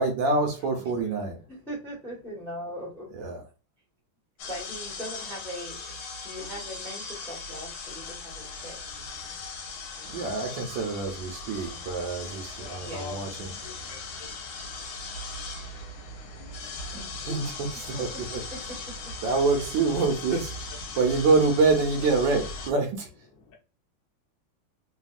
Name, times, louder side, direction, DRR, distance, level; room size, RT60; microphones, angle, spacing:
voice 1, 0.0-1.4 3.1-3.4 10.1-13.5 17.3-17.4 17.8-18.4 19.2-20.4 21.0-23.1, right 3 dB, 70° right, 3 dB, 1.3 m, -26 dB
voice 2, 1.5-3.1 4.5-8.8 9.9-10.6 12.8-13.3 16.9-17.4 17.9-19.2 19.6-19.7, equal, ahead, -3 dB, 0.7 m, -41 dB
sound 1, 4.4-22.7, left 3 dB, 75° left, 1.4 m, -39 dB
voice 3, 12.5-17.0 17.8-18.5 20.3-20.4 20.7-21.3 23.3-23.5, left 6 dB, 60° left, 0 dB, 0.8 m, -48 dB
3.5 x 2.3 x 2.3 m, 0.34 s
omnidirectional pair, 2.4 m